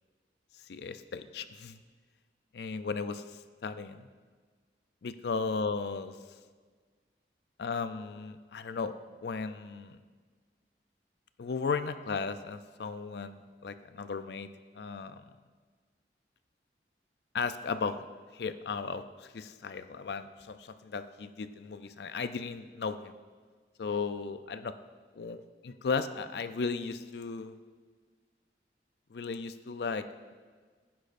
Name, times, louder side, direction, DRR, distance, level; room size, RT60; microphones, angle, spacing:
voice 1, 0.7-1.8 2.5-4.1 5.0-6.2 7.6-8.9 9.2-10.0 11.4-14.5 14.7-15.2 17.3-18.0 18.3-23.2 23.8-24.6 25.2-27.6 29.1-30.0, left 4 dB, 70° left, 11 dB, 0.4 m, -35 dB
10.5 x 10.0 x 2.5 m, 1.5 s
head